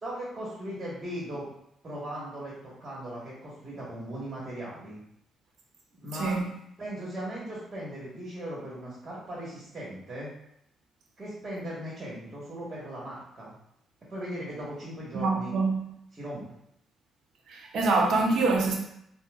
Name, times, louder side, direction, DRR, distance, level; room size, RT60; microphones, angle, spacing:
voice 1, 0.0-1.4 1.8-5.0 5.9-6.3 6.8-10.3 11.2-13.6 14.1-15.5 16.1-16.4, equal, 35° right, -6 dB, 1.2 m, -38 dB
voice 2, 6.1-6.5 15.1-15.8 17.5-18.7, right 3 dB, 70° right, 1 dB, 0.6 m, -25 dB
5.5 x 2.0 x 2.3 m, 0.75 s
cardioid pair, 90°, 0 cm